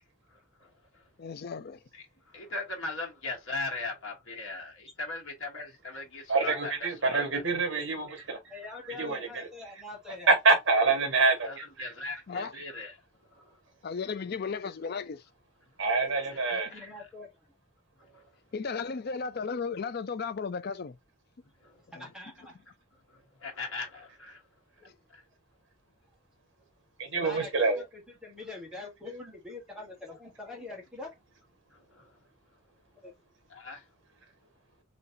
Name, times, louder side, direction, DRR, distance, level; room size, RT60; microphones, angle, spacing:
voice 1, 1.2-1.8 12.3-12.5 13.8-15.2 18.5-21.0 22.0-22.1, left 5 dB, 45° left, 0.4 m, -35 dB
voice 2, 2.3-6.7 7.1-7.4 11.4-12.9 13.3-13.4 16.5-16.8 18.0-18.3 21.6-21.8 23.1-24.4 25.1-25.2 31.7-32.1 33.5-33.8, left 3 dB, 65° left, 1.4 m, -39 dB
voice 3, 6.3-8.4 9.0-9.5 10.3-11.9 15.8-16.7 27.0-27.8, right 3 dB, 60° right, 1.5 m, -26 dB
voice 4, 8.5-10.3 16.5-17.3 21.9-22.5 24.8-24.9 27.2-27.5 27.8-31.2 33.0-33.1, left 2 dB, 5° right, 1.3 m, -44 dB
3.9 x 3.2 x 2.7 m
head